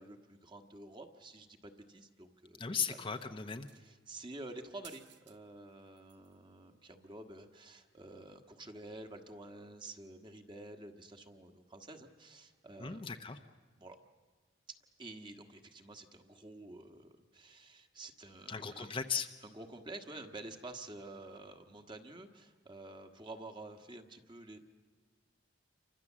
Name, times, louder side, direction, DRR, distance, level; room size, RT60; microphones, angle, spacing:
voice 1, 0.0-3.0 3.7-13.1 13.8-14.0 15.0-18.9 19.4-24.6, right 2 dB, 25° right, 6 dB, 1.5 m, -50 dB
voice 2, 2.6-3.7 12.8-13.4 18.5-19.3, left 6 dB, 25° left, 6 dB, 0.8 m, -37 dB
sound 1, 3.5-4.0 4.8-5.4 5.7-6.4 7.4-7.5, right 10 dB, 65° right, 1.1 m, -58 dB
29.0 x 24.5 x 7.4 m, 1.4 s
head